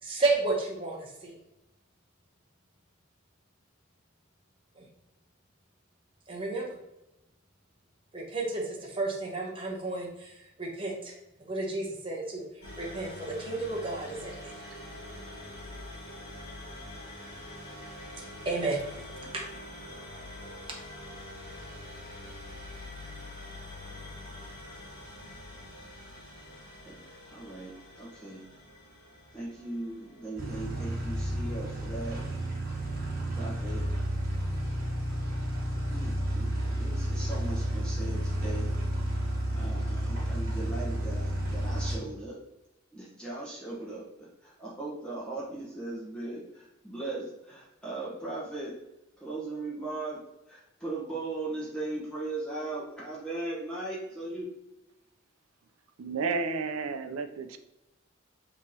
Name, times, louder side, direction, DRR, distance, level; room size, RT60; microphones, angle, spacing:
voice 1, 0.0-1.4 4.8-4.9 6.3-6.8 8.1-11.1 11.4-12.4 12.8-14.5 18.4-18.8 19.3-19.4, right 3 dB, 25° right, -2 dB, 0.8 m, -32 dB
sound 1, 12.6-30.4, left 1 dB, 45° left, 1.4 m, -45 dB
voice 2, 27.3-28.4 29.3-32.2 33.3-33.9 35.9-38.7 39.5-42.4 42.9-48.8 49.2-50.2 50.5-54.5, right 2 dB, 5° left, -7 dB, 1.1 m, -38 dB
sound 2, 30.4-41.9, right 1 dB, 45° right, 1.3 m, -31 dB
voice 3, 56.0-57.6, right 4 dB, 85° right, 8 dB, 0.5 m, -32 dB
5.4 x 3.0 x 2.8 m, 0.92 s
head